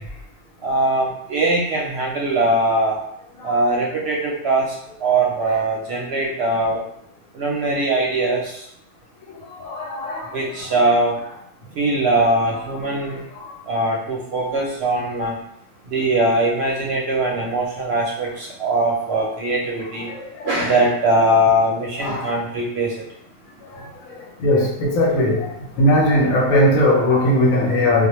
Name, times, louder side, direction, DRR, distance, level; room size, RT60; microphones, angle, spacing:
voice 1, 0.6-3.0 3.4-6.8 7.3-8.6 10.3-11.2 11.8-13.2 13.7-15.3 15.9-20.1 20.4-22.9, right 1 dB, 65° right, -2 dB, 0.7 m, -21 dB
voice 2, 9.3-10.3 10.6-10.9 12.1-12.2 13.3-13.5 20.0-20.5 22.0-22.3 23.7-28.1, left 1 dB, 90° left, 1 dB, 1.0 m, -20 dB
2.2 x 2.1 x 2.9 m, 0.72 s
omnidirectional pair, 1.4 m